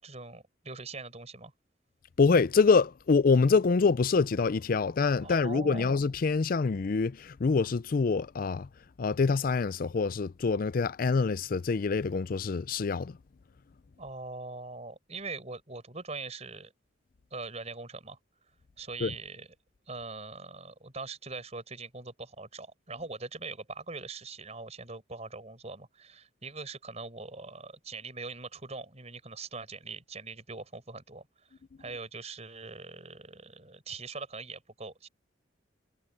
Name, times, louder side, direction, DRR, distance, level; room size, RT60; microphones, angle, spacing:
voice 1, 0.0-1.5 5.2-6.0 14.0-16.7 17.3-18.2 18.5-19.5 19.9-35.1, right 3 dB, 35° right, 5.3 m, -42 dB
voice 2, 2.2-8.7 9.0-13.2 19.0-19.1, left 4 dB, 50° left, 0.4 m, -25 dB
head